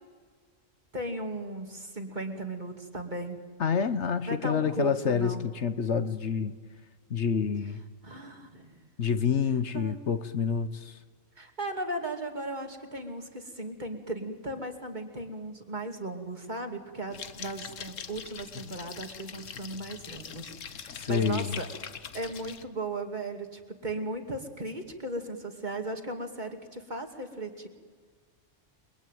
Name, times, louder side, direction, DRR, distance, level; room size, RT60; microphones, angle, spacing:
voice 1, 0.9-3.4 4.3-5.5 8.0-8.8 9.7-10.0 11.4-21.7 22.1-27.7, right 2 dB, 35° right, 4 dB, 2.8 m, -36 dB
voice 2, 3.6-6.5 7.1-7.8 9.0-11.0 20.9-21.6, left 6 dB, 65° left, 12 dB, 1.3 m, -28 dB
sound 1, 17.1-22.6, left 7 dB, 85° left, 1.4 m, -42 dB
29.5 x 21.5 x 9.3 m, 1.6 s
omnidirectional pair, 1.3 m